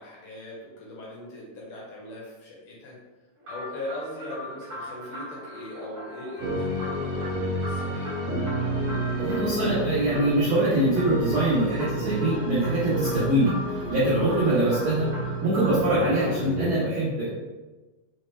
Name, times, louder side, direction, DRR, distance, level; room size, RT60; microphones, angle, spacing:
voice 1, 0.0-2.9 3.5-8.1 14.4-14.5, left 1 dB, 75° left, -4 dB, 1.4 m, -39 dB
sound 1, 3.4-16.4, left 1 dB, 45° right, 1.1 m, -40 dB
sound 2, 6.4-16.7, right 1 dB, 60° right, 1.9 m, -30 dB
voice 2, 9.2-13.5 13.9-15.1 15.4-17.3, right 1 dB, 80° right, -9 dB, 1.1 m, -23 dB
5.6 x 2.1 x 3.2 m, 1.2 s
omnidirectional pair, 3.7 m